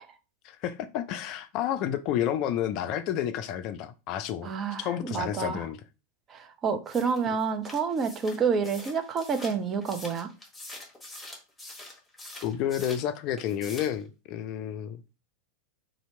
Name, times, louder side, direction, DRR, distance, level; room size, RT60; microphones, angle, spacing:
voice 1, 0.4-4.5 4.8-5.8 12.4-15.0, left 10 dB, 40° left, 0.4 m, -30 dB
voice 2, 4.4-5.6 6.3-10.3, right 5 dB, 25° right, 0.6 m, -29 dB
sound 1, 6.9-13.1 13.4-14.0, left 1 dB, 10° left, 1.3 m, -45 dB
2.8 x 2.7 x 4.3 m
figure-of-eight pair, 90°, 0 cm